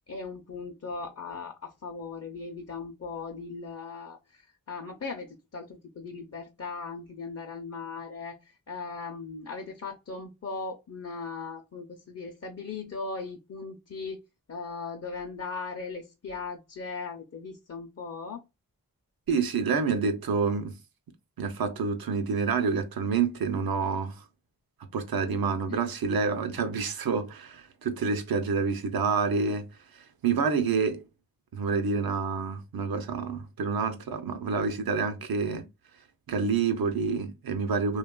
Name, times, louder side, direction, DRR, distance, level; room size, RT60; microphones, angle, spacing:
voice 1, 0.1-14.2 14.5-18.4 25.7-25.8, left 4 dB, 45° left, 0.6 m, -38 dB
voice 2, 19.3-20.8 21.4-24.2 24.9-29.7 29.9-31.0 31.5-35.7 36.3-38.0, right 5 dB, 85° right, 0.6 m, -28 dB
2.8 x 2.3 x 2.2 m
cardioid pair, 40°, 35 cm